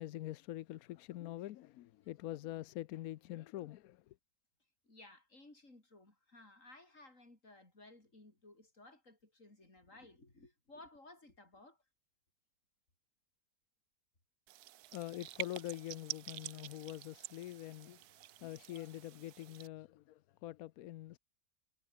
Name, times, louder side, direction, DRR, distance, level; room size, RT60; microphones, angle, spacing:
voice 1, 0.0-4.2 14.9-18.0 18.4-21.2, left 14 dB, 70° left, 0.9 m, -45 dB
voice 2, 4.8-11.8, left 2 dB, 45° left, 6.0 m, -58 dB
sound 1, 14.5-19.7, right 14 dB, 70° right, 1.1 m, -48 dB
omnidirectional pair, 1.8 m